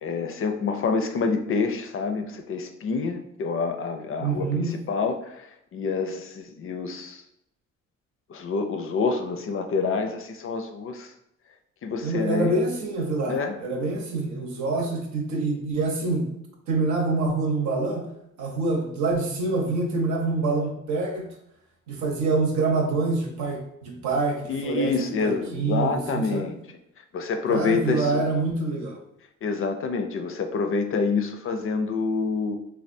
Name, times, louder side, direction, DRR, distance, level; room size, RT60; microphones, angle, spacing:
voice 1, 0.0-7.2 8.3-11.1 11.8-12.5 13.3-13.6 24.4-26.6 27.1-28.2 29.4-32.6, left 4 dB, 45° left, 7 dB, 0.4 m, -27 dB
voice 2, 4.2-4.8 12.0-16.3 16.7-18.1 18.4-21.2 21.9-24.9 25.2-26.5 27.5-29.0, right 3 dB, 70° right, 1 dB, 0.9 m, -26 dB
3.3 x 2.3 x 2.6 m, 0.78 s
cardioid pair, 90°, 30 cm